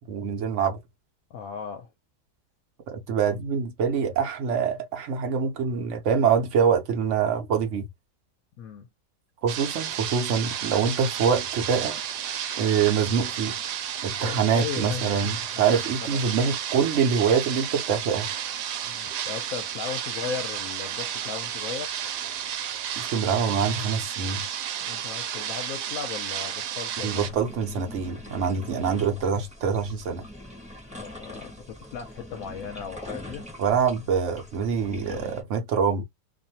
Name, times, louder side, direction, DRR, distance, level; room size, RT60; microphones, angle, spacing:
voice 1, 0.1-0.8 2.9-7.9 9.4-12.0 12.6-13.6 14.0-18.3 23.0-24.4 27.0-30.2 33.6-36.0, right 6 dB, 55° right, 1.0 m, -25 dB
voice 2, 1.3-1.9 8.6-8.9 14.2-15.8 16.1-16.5 18.8-21.9 24.8-27.2 30.9-33.4, left 7 dB, 70° left, 0.9 m, -37 dB
sound 1, 9.5-27.3, right 9 dB, 85° right, 1.2 m, -32 dB
sound 2, 27.2-35.4, left 1 dB, 5° right, 1.0 m, -43 dB
2.6 x 2.5 x 2.7 m
omnidirectional pair, 1.7 m